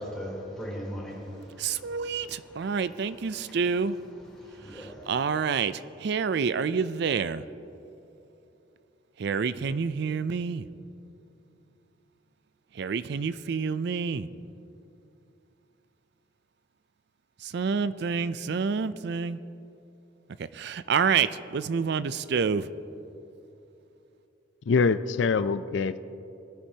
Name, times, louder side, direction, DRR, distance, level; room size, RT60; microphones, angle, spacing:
voice 1, 0.0-3.6 4.3-5.1, equal, 5° left, -6 dB, 3.3 m, -40 dB
voice 2, 1.6-3.9 4.8-7.4 9.2-10.6 12.8-14.3 17.4-19.4 20.5-22.7, right 6 dB, 60° right, 15 dB, 0.4 m, -28 dB
voice 3, 24.7-26.0, left 4 dB, 70° left, 12 dB, 0.4 m, -24 dB
22.0 x 9.9 x 2.8 m, 2.8 s
head